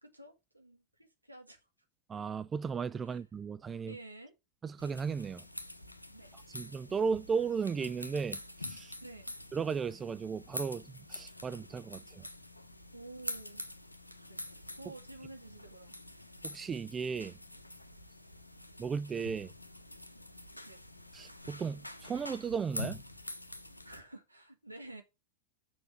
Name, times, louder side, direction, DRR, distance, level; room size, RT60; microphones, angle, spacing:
voice 1, 0.0-1.6 3.0-3.2 3.9-4.3 6.1-6.3 9.0-9.3 12.9-13.6 14.3-14.4 14.8-15.9 20.7-20.8 23.8-25.0, right 2 dB, 85° right, 1.8 m, -50 dB
voice 2, 2.1-4.0 4.6-5.4 6.5-8.9 9.5-10.8 11.1-12.3 16.4-17.4 18.8-19.5 21.1-23.0, right 5 dB, 20° right, 0.4 m, -35 dB
sound 1, 4.8-24.0, left 1 dB, 85° left, 0.9 m, -46 dB
6.8 x 6.0 x 4.9 m
figure-of-eight pair, 90°, 0 cm